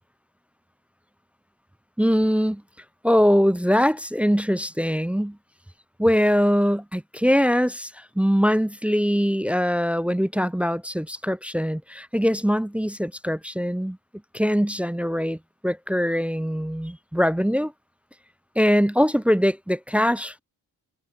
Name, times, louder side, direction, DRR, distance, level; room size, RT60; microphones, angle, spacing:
voice 1, 2.0-2.6 3.0-5.4 6.0-14.0 14.3-17.7 18.6-20.4, equal, 5° right, 0.3 m, -22 dB
cardioid pair, 85°, 38 cm